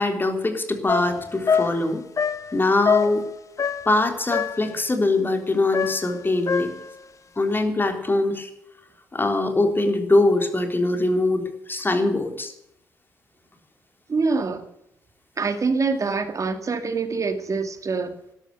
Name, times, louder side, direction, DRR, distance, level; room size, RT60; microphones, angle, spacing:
voice 1, 0.0-2.0 2.5-3.3 3.9-6.7 7.4-8.5 9.1-12.5, left 2 dB, 25° left, 5 dB, 3.5 m, -22 dB
sound 1, 0.9-4.0 4.3-4.8 5.7-7.0, left 6 dB, 45° left, 1.1 m, -25 dB
voice 2, 14.1-14.7 15.4-18.1, right 4 dB, 40° right, 8 dB, 2.1 m, -25 dB
13.0 x 12.0 x 6.9 m, 0.78 s
hypercardioid pair, 50°, 8 cm